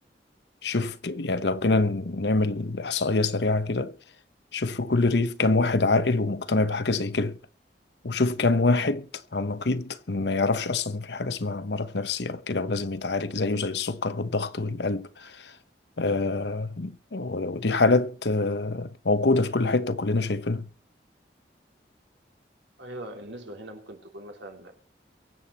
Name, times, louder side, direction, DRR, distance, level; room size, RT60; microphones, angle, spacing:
voice 1, 0.6-3.9 4.5-7.4 8.0-15.5 16.0-20.7, left 3 dB, 80° left, 1.0 m, -25 dB
voice 2, 22.8-24.8, right 1 dB, 90° right, 3.1 m, -41 dB
23.5 x 7.9 x 4.2 m
head